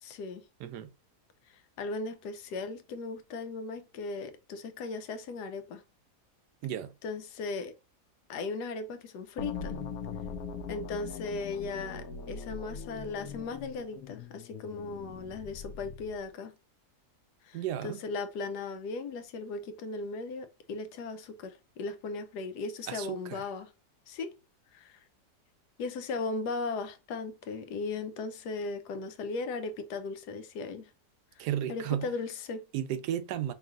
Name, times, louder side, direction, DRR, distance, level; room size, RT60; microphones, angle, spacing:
voice 1, 0.0-0.5 1.8-5.8 7.0-7.7 8.3-9.8 10.7-16.5 17.4-23.7 24.1-24.4 24.7-25.0 25.8-30.9 31.7-32.6, left 3 dB, 85° left, 1.2 m, -37 dB
sound 1, 9.4-16.3, left 5 dB, 65° left, 1.1 m, -41 dB
voice 2, 17.5-18.0 22.9-23.4 31.4-32.1 32.7-33.5, right 11 dB, 80° right, 1.1 m, -33 dB
4.6 x 3.1 x 2.4 m
omnidirectional pair, 1.7 m